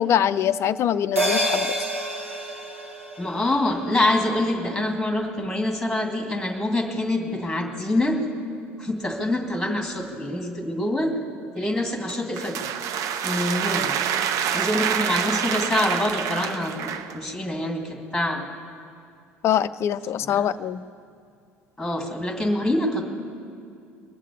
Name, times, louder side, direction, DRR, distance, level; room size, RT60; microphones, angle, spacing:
voice 1, 0.0-1.7 19.4-20.8, left 10 dB, 40° left, 13 dB, 0.4 m, -23 dB
sound 1, 1.2-5.9 6.2-6.3, equal, 90° right, 1.2 m, -29 dB
voice 2, 3.2-8.3 8.8-11.1 11.5-12.7 13.2-14.0 14.5-18.4 20.2-20.5 21.8-23.0, left 1 dB, 5° left, 3 dB, 2.3 m, -25 dB
sound 2, 12.1-17.2, right 8 dB, 50° right, 0.7 m, -27 dB
21.0 x 7.4 x 8.5 m, 2.4 s
figure-of-eight pair, 65°, 7 cm